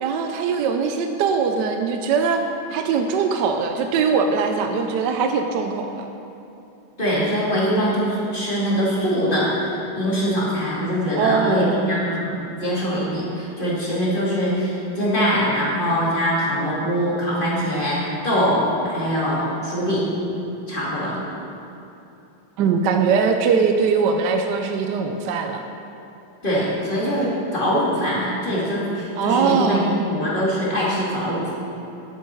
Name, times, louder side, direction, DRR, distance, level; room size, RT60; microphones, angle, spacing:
voice 1, 0.0-2.4 2.7-6.1 11.1-11.9 22.6-25.6 29.2-30.0, right 5 dB, 70° right, 5 dB, 1.1 m, -21 dB
voice 2, 7.0-20.1 20.7-21.2 26.4-31.5, equal, 25° left, -7 dB, 2.5 m, -23 dB
11.0 x 9.3 x 4.5 m, 2.9 s
omnidirectional pair, 2.3 m